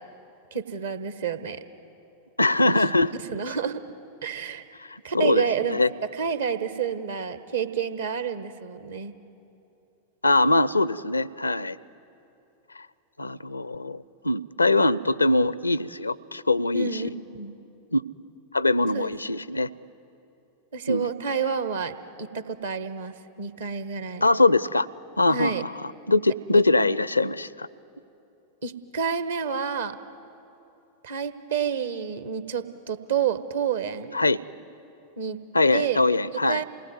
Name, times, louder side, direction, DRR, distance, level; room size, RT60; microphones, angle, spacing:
voice 1, 0.5-1.6 2.6-2.7 3.3-3.8 4.2-4.6 5.0-5.8 6.1-9.1 16.7-17.5 18.9-19.1 20.7-24.2 25.3-25.6 28.6-30.0 31.0-34.1 35.2-35.4 35.7-36.0 36.3-36.6, right 7 dB, 65° right, 11 dB, 1.3 m, -29 dB
voice 2, 2.4-3.1 4.8-5.9 10.2-11.8 12.8-12.9 13.2-17.1 17.9-18.0 18.5-19.7 20.9-21.1 24.2-24.9 25.2-27.7 34.1-34.4 35.5-36.6, left 2 dB, 80° left, 20 dB, 0.5 m, -22 dB
28.0 x 19.5 x 9.6 m, 2.8 s
figure-of-eight pair, 90°, 0 cm